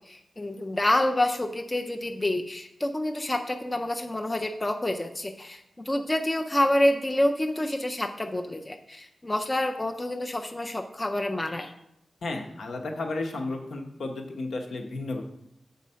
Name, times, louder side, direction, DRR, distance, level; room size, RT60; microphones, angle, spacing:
voice 1, 0.1-11.7, left 1 dB, 15° left, 4 dB, 0.4 m, -27 dB
voice 2, 12.2-15.2, left 2 dB, 75° left, 2 dB, 1.1 m, -33 dB
7.4 x 4.1 x 5.6 m, 0.78 s
wide cardioid pair, 155°, 0 cm